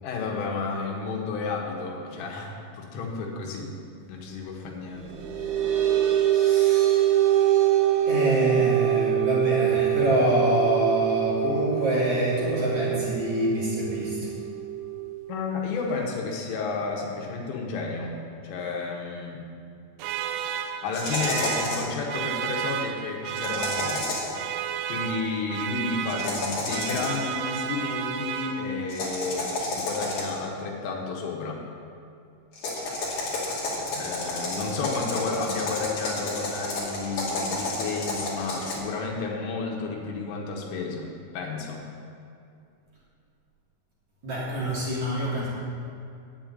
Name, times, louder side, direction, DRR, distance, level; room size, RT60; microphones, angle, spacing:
voice 1, 0.0-3.7 4.1-5.1 15.3-18.2 18.4-19.4 20.8-24.1 24.9-31.6 33.8-41.9, left 4 dB, 80° left, 0 dB, 3.9 m, -32 dB
sound 1, 4.9-15.9, right 12 dB, 75° right, 3.7 m, -24 dB
voice 2, 6.3-7.4 8.1-14.3 44.2-45.5, equal, 40° right, -8 dB, 3.6 m, -26 dB
sound 2, 20.0-29.0, right 9 dB, 90° right, 3.3 m, -32 dB
sound 3, 20.9-22.0 23.4-24.4 26.1-27.3 28.9-30.5 32.5-38.7, left 2 dB, 45° left, 3.4 m, -31 dB
8.9 x 8.7 x 9.0 m, 2.4 s
omnidirectional pair, 5.7 m